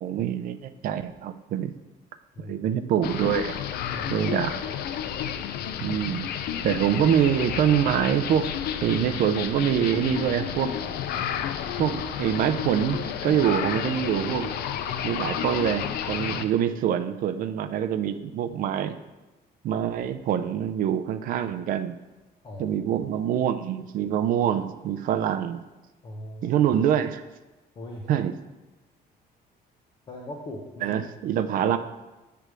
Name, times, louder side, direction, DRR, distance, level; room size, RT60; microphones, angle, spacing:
voice 1, 0.0-1.7 2.4-3.6 4.1-4.6 5.8-6.3 6.6-8.5 8.8-10.7 11.2-11.3 11.8-14.5 15.0-19.0 19.6-22.0 22.6-25.6 26.4-27.2 28.1-28.3 30.8-31.8, right 9 dB, 55° right, 9 dB, 0.4 m, -25 dB
sound 1, 3.0-16.4, left 9 dB, 65° left, 0.5 m, -31 dB
voice 2, 3.9-4.3 22.4-22.8 26.0-26.6 27.7-28.1 30.1-31.0 31.6-31.7, left 1 dB, 25° left, -1 dB, 0.7 m, -39 dB
7.9 x 3.4 x 6.1 m, 1.1 s
cardioid pair, 170°, 17 cm